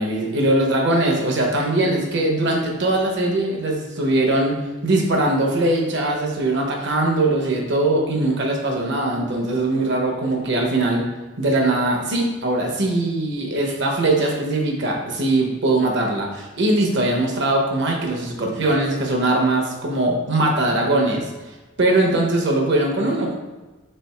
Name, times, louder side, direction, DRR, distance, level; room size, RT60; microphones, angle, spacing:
voice 1, 0.0-11.0 11.4-21.3 21.8-23.4, right 2 dB, 60° right, 1 dB, 0.9 m, -21 dB
3.6 x 3.4 x 4.3 m, 1.2 s
head